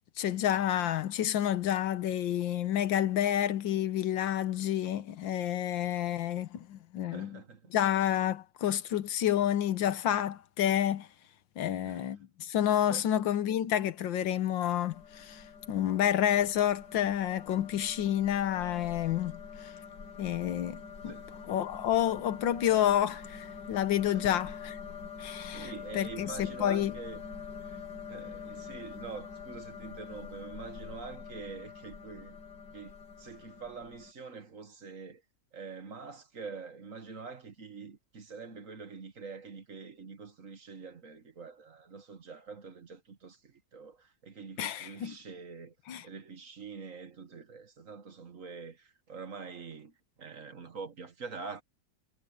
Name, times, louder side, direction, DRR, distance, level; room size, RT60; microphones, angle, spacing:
voice 1, 0.2-7.3 7.7-11.1 11.6-19.3 19.6-19.7 20.2-20.8 21.0-21.1 21.5-24.8 25.2-26.9 44.6-45.2 45.9-46.0, left 11 dB, 85° left, 1.7 m, -29 dB
voice 2, 7.1-7.7 11.8-12.1 12.9-13.1 21.0-21.3 24.1-24.4 25.5-27.2 27.6-32.4 32.7-35.2 35.5-45.8 46.0-51.6, right 5 dB, 45° right, 1.7 m, -45 dB
sound 1, 14.9-34.1, left 6 dB, 65° left, 2.4 m, -45 dB
omnidirectional pair, 2.0 m